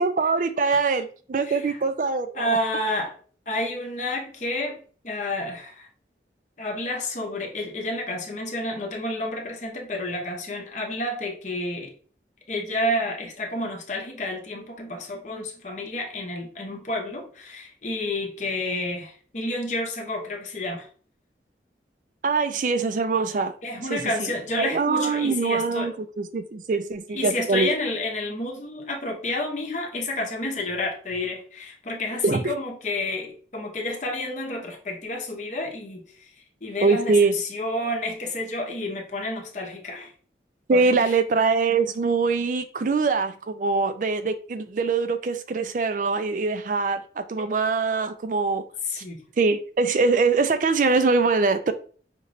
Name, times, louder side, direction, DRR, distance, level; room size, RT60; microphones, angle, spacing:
voice 1, 0.0-2.6 22.2-23.5 23.9-24.0 24.6-27.7 32.2-32.4 36.8-37.3 40.7-48.6 49.0-49.1 49.4-51.7, right 4 dB, 45° right, 0.4 m, -23 dB
voice 2, 1.4-1.8 2.3-3.1 3.5-4.8 5.0-5.9 6.6-11.9 12.5-20.9 23.6-25.9 27.1-36.0 36.6-40.1 40.7-41.1 48.9-49.2, left 1 dB, 40° left, 0.7 m, -30 dB
5.1 x 3.0 x 2.6 m
head